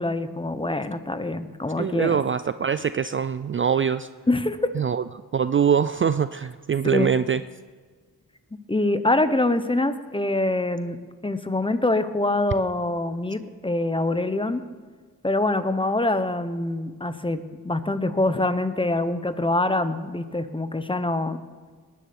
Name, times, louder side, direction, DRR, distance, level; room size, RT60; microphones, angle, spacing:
voice 1, 0.0-2.2 4.3-4.7 6.8-7.1 8.7-11.0 11.2-14.6 15.2-21.4, left 2 dB, 15° left, 11 dB, 0.9 m, -25 dB
voice 2, 1.8-4.1 4.7-5.0 5.3-7.4, right 7 dB, 35° right, 13 dB, 0.4 m, -23 dB
20.0 x 10.5 x 6.1 m, 1.5 s
wide cardioid pair, 105°, 36 cm